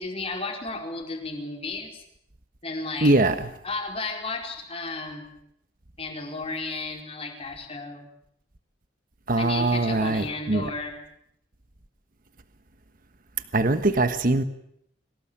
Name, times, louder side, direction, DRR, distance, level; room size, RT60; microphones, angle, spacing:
voice 1, 0.0-2.0 2.6-3.1 3.6-5.3 6.0-8.1 9.4-11.0, left 3 dB, 30° left, 4.7 m, -33 dB
voice 2, 3.0-3.5 9.3-10.6 13.5-14.4, right 2 dB, 50° right, 1.3 m, -22 dB
23.5 x 19.0 x 8.7 m
head